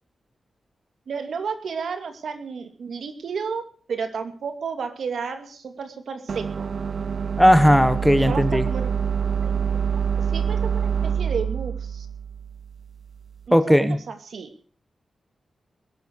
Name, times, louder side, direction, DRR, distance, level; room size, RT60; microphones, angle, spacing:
voice 1, 1.1-3.6 3.9-6.7 8.2-8.9 9.4-9.5 9.9-12.1 13.5-14.5, right 5 dB, 75° right, 8 dB, 2.4 m, -32 dB
sound 1, 6.3-13.4, right 7 dB, 50° right, 0.7 m, -26 dB
voice 2, 7.4-8.6 13.5-14.0, equal, ahead, 12 dB, 1.1 m, -16 dB
21.0 x 12.0 x 4.7 m, 0.43 s
wide cardioid pair, 150°, 0 cm